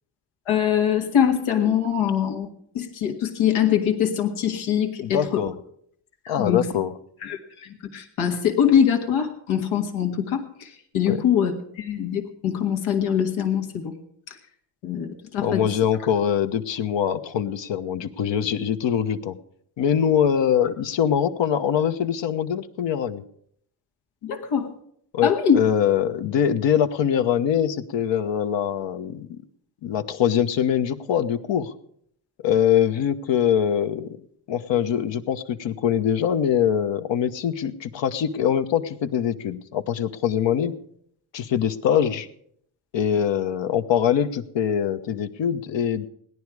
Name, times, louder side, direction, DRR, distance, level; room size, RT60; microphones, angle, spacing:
voice 1, 0.5-2.5 2.7-5.4 6.2-6.7 7.2-13.9 14.3-14.4 14.8-15.6 24.2-24.7 25.2-25.6, left 8 dB, 85° left, 4 dB, 1.8 m, -23 dB
voice 2, 5.0-5.5 6.3-6.9 11.1-11.2 15.4-19.4 19.8-23.2 25.1-29.4 29.8-31.7 32.4-34.1 34.5-40.7 41.3-42.3 42.9-46.1, left 9 dB, 65° left, 9 dB, 1.1 m, -23 dB
17.0 x 11.0 x 4.8 m, 0.67 s
cardioid pair, 75°, 48 cm